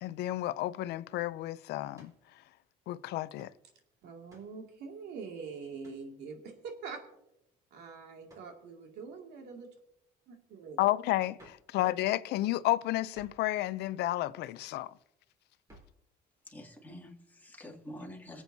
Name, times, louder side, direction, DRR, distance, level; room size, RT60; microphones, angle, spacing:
voice 1, 0.0-2.1 2.9-3.5 10.8-14.9, left 15 dB, 80° left, 0.5 m, -31 dB
sound 1, 1.9-2.3 3.4-3.6 4.3-4.6 5.8-6.1 8.3-8.6 11.4-11.7 13.1-13.5 15.7-16.0, right 1 dB, 20° right, 3.8 m, -58 dB
voice 2, 4.0-7.0 7.7-9.7 10.3-10.8 14.6-14.7, right 5 dB, 80° right, 2.4 m, -44 dB
voice 3, 16.4-18.4, equal, 10° left, 2.5 m, -47 dB
26.0 x 8.7 x 2.7 m
cardioid pair, 110°, 17 cm